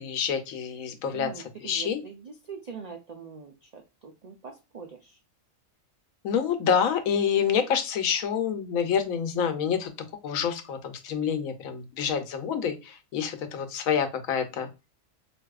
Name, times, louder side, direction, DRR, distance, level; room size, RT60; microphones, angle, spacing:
voice 1, 0.0-1.3 1.6-2.0 6.2-9.9 10.2-14.7, left 7 dB, 85° left, 7 dB, 1.1 m, -27 dB
voice 2, 1.1-5.2, right 6 dB, 80° right, 2 dB, 0.3 m, -43 dB
4.0 x 2.6 x 2.3 m, 0.28 s
omnidirectional pair, 1.4 m